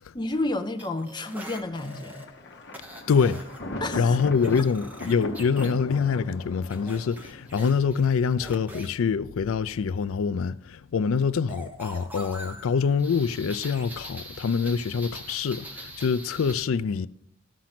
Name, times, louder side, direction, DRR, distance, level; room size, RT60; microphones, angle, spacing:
voice 1, 0.1-2.3 3.8-4.2, left 2 dB, 20° left, 0.6 m, -31 dB
sound 1, 0.8-2.2 2.7-3.6 4.0-5.7 6.7-8.9 11.5-16.5, right 1 dB, 10° right, 1.1 m, -42 dB
Thunder, 1.5-7.9, left 1 dB, 50° left, 1.1 m, -38 dB
voice 2, 3.1-3.4 4.0-17.1, left 5 dB, 75° left, 0.4 m, -25 dB
13.0 x 6.1 x 5.9 m
head